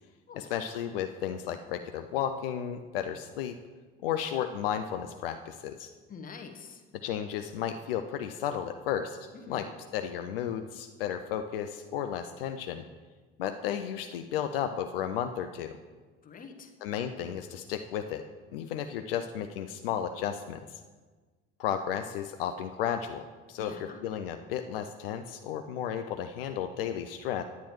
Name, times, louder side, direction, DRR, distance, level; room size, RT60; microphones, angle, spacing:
voice 1, 0.4-3.6 4.0-5.9 7.0-9.7 9.9-12.8 13.4-15.8 16.8-18.2 18.5-20.8 21.6-23.8 24.0-27.4, left 9 dB, 70° left, 7 dB, 0.5 m, -33 dB
voice 2, 6.1-6.8 9.3-9.7 16.2-16.7 23.6-24.0, left 5 dB, 30° left, 5 dB, 0.9 m, -45 dB
10.0 x 9.2 x 3.0 m, 1.4 s
figure-of-eight pair, 60°, 30 cm